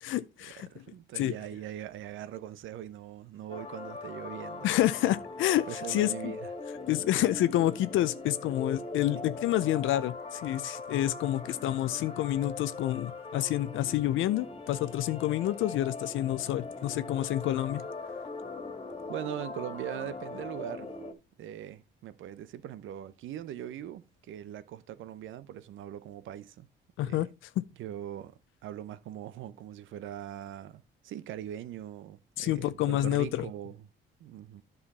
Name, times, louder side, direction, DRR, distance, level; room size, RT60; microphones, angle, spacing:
voice 1, 0.0-0.7 1.2-1.3 4.6-6.3 6.9-17.8 27.0-27.3 32.4-33.5, left 14 dB, 80° left, 0.5 m, -28 dB
voice 2, 0.6-4.7 5.7-6.5 19.1-20.9 21.4-26.7 27.0-27.3 27.8-33.8 34.2-34.6, right 11 dB, 80° right, 0.7 m, -41 dB
sound 1, 3.5-21.1, left 3 dB, 30° left, 1.8 m, -41 dB
9.8 x 5.6 x 4.1 m
cardioid pair, 90°, 20 cm